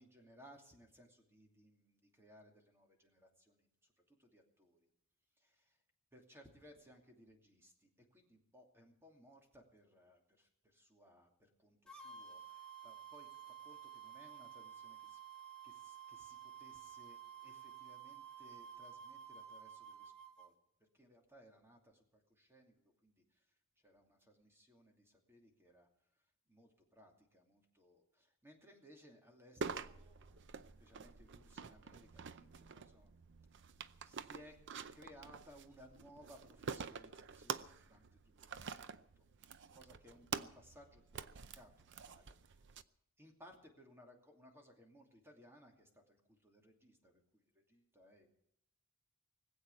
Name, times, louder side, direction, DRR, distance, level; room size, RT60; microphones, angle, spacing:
voice 1, 0.0-4.8 5.4-5.8 6.1-11.3 11.6-15.2 15.6-20.5 20.9-23.5 23.8-25.9 26.5-30.5 30.8-33.1 34.0-34.6 34.9-38.0 38.4-39.2 39.7-42.7 43.2-48.4, equal, 10° right, 2 dB, 2.6 m, -63 dB
sound 1, 11.9-20.5, right 8 dB, 5° left, 1.4 m, -53 dB
sound 2, 29.6-42.8, right 6 dB, 55° right, 0.6 m, -47 dB
20.0 x 8.2 x 8.4 m, 0.76 s
head